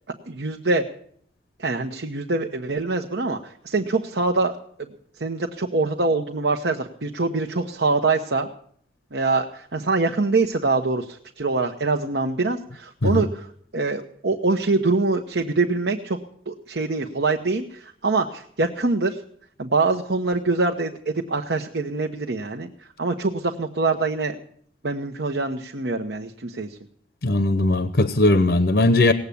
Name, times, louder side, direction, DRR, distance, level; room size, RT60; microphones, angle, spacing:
voice 1, 0.3-0.8 1.6-4.6 5.2-8.5 9.1-13.5 13.7-16.2 16.5-19.2 19.6-22.7 23.0-24.4 24.8-26.8, right 3 dB, 75° right, 3 dB, 1.0 m, -24 dB
voice 2, 27.2-29.1, left 2 dB, 70° left, 12 dB, 0.8 m, -18 dB
18.5 x 8.2 x 8.5 m, 0.62 s
head